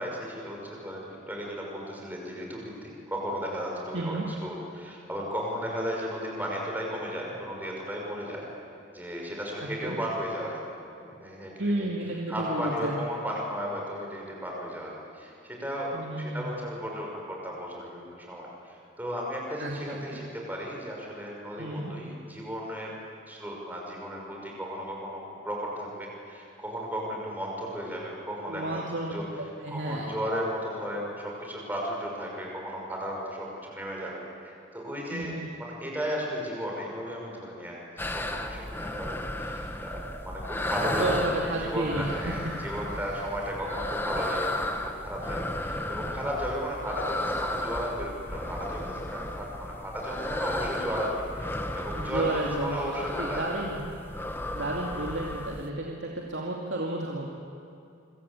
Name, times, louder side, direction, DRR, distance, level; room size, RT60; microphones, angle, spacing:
voice 1, 0.0-4.1 4.4-8.4 8.9-10.6 11.0-11.9 12.3-22.9 23.3-28.8 29.1-29.2 29.7-35.3 35.6-53.5, equal, 10° right, -2 dB, 6.0 m, -35 dB
voice 2, 3.9-4.2 9.6-10.0 11.6-13.0 15.9-16.5 19.6-20.2 21.6-21.9 28.5-30.1 35.1-35.5 40.8-42.6 42.9-43.2 51.9-53.8 54.5-57.3, right 1 dB, 65° right, -1 dB, 2.6 m, -32 dB
sound 1, 38.0-55.7, left 1 dB, 10° left, 1.3 m, -34 dB
26.5 x 25.0 x 8.5 m, 2.7 s
head